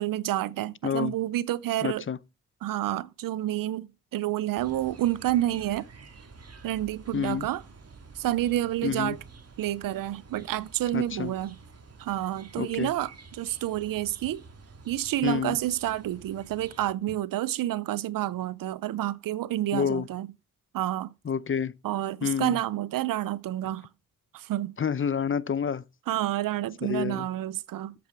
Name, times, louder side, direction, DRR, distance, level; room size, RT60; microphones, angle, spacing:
voice 1, 0.0-2.0 2.6-5.9 6.6-7.6 8.2-9.2 9.6-11.6 12.0-14.4 14.9-20.3 20.7-21.1 21.8-23.9 24.3-24.8 26.1-27.9, right 14 dB, 90° right, 0.6 m, -29 dB
voice 2, 0.8-1.1 1.8-2.2 7.1-7.5 8.8-9.1 10.9-11.3 12.6-12.9 15.2-15.6 19.7-20.1 21.2-21.7 22.2-22.6 24.8-25.8 26.8-27.3, left 7 dB, 40° left, 0.7 m, -28 dB
sound 1, 4.6-16.9, right 4 dB, 50° right, 1.9 m, -50 dB
8.4 x 7.8 x 4.6 m
cardioid pair, 60°, 33 cm